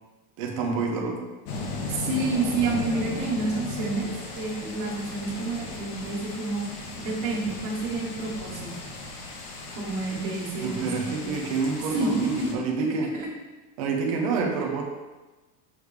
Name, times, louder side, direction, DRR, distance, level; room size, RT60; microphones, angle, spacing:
voice 1, 0.4-1.3 10.6-13.1 13.8-14.8, right 4 dB, 25° right, 0 dB, 0.3 m, -28 dB
sound 1, 1.5-12.5, left 3 dB, 65° left, 1.3 m, -36 dB
voice 2, 1.9-8.7 9.7-11.3 11.9-12.6 13.1-13.3, right 3 dB, 45° right, -3 dB, 1.6 m, -29 dB
6.4 x 3.3 x 4.9 m, 1.2 s
supercardioid pair, 180°, 48 cm